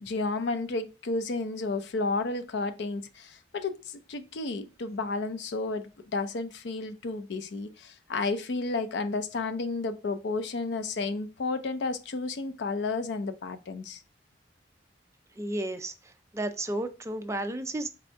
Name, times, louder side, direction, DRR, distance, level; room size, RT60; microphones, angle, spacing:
voice 1, 0.0-14.0, left 3 dB, 70° left, 0.5 m, -32 dB
voice 2, 15.4-15.9 16.3-17.9, right 1 dB, 15° right, 0.4 m, -32 dB
4.1 x 2.7 x 3.3 m
head